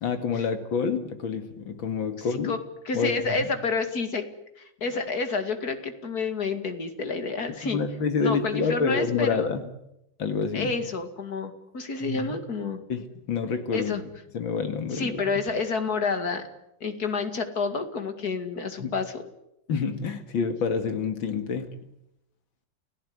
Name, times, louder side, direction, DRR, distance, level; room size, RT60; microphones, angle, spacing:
voice 1, 0.0-2.5 2.9-3.1 3.4-3.5 7.6-9.6 10.2-10.8 12.0-12.4 12.9-13.9 14.3-15.4 18.8-18.9 19.7-21.7, left 5 dB, 90° left, 8 dB, 2.8 m, -28 dB
voice 2, 2.2-2.6 2.8-4.3 4.6-7.8 8.2-9.4 10.5-12.8 13.7-14.0 14.9-16.5 16.8-19.2, left 4 dB, 50° left, 8 dB, 2.7 m, -29 dB
29.5 x 16.5 x 9.6 m, 0.84 s
omnidirectional pair, 2.1 m